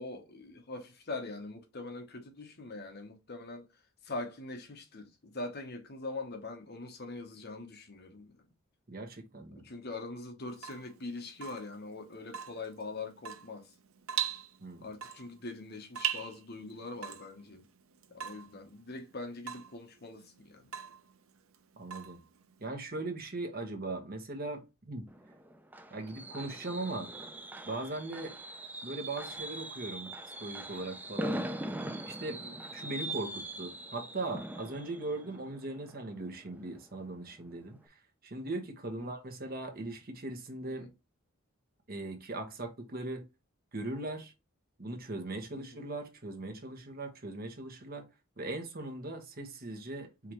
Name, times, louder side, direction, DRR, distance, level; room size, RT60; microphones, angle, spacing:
voice 1, 0.0-3.7 4.0-8.4 9.5-13.7 14.8-17.7 18.1-20.7 32.3-32.6 39.0-39.1 40.6-40.9 45.5-45.8, left 3 dB, 50° left, 1.0 m, -43 dB
voice 2, 8.9-9.7 14.6-14.9 21.8-22.2 22.6-25.1 25.9-27.1 27.6-28.3 28.8-30.1 30.4-31.4 32.0-32.4 32.7-37.9 38.2-40.9 41.9-43.3 43.7-44.3 44.8-48.0 48.4-50.3, right 2 dB, 45° right, 1.2 m, -39 dB
Water tap faucet / Drip, 10.5-22.7, right 9 dB, 75° right, 0.6 m, -42 dB
Fireworks, 25.1-36.8 37.1-37.4 37.7-37.8, right 1 dB, 10° right, 0.4 m, -41 dB
4.8 x 3.5 x 3.0 m
head